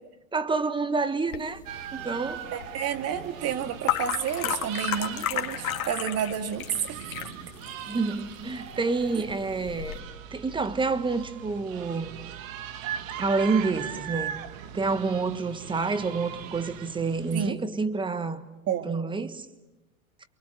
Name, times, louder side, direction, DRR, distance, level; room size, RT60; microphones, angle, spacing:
voice 1, 0.3-1.6 1.9-2.5 7.9-10.0 10.3-12.2 13.2-14.4 14.7-18.4 18.8-19.5, right 4 dB, 10° right, 1.3 m, -28 dB
sound 1, 1.3-10.0, left 10 dB, 75° left, 2.2 m, -34 dB
sound 2, 1.7-17.5, right 9 dB, 65° right, 2.0 m, -40 dB
voice 2, 2.5-7.1 17.3-17.6 18.7-18.9, right 9 dB, 35° right, 2.2 m, -30 dB
28.5 x 23.0 x 7.9 m
hypercardioid pair, 110°, 43 cm